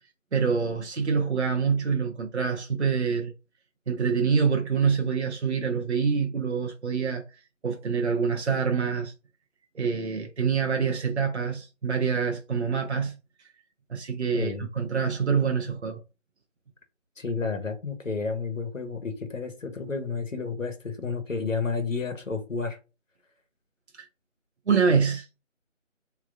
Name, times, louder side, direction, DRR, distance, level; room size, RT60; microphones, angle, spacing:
voice 1, 0.3-3.3 3.9-7.2 7.6-9.1 9.7-13.5 13.9-16.0 23.9-24.1 24.7-25.3, right 6 dB, 60° right, 0.7 m, -26 dB
voice 2, 14.3-14.7 17.2-22.8, left 4 dB, 80° left, 1.3 m, -31 dB
3.4 x 3.2 x 2.5 m
figure-of-eight pair, 175°, 39 cm